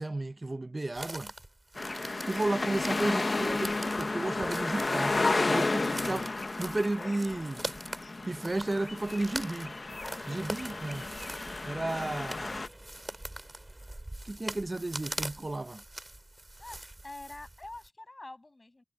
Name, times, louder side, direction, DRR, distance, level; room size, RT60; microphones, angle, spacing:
voice 1, 0.0-1.3 2.2-5.2 5.5-6.3 6.6-7.6 8.2-9.7 10.3-11.1 11.6-12.7 14.2-15.8, right 2 dB, 55° right, 0.8 m, -33 dB
sound 1, 0.9-17.9, right 1 dB, 40° right, 2.6 m, -43 dB
sound 2, 1.8-12.7, left 3 dB, 85° left, 1.1 m, -32 dB
sound 3, 9.9-14.6, right 1 dB, 20° right, 3.5 m, -53 dB
voice 2, 16.6-18.8, left 2 dB, 55° left, 7.1 m, -46 dB
wide cardioid pair, 55°, 0 cm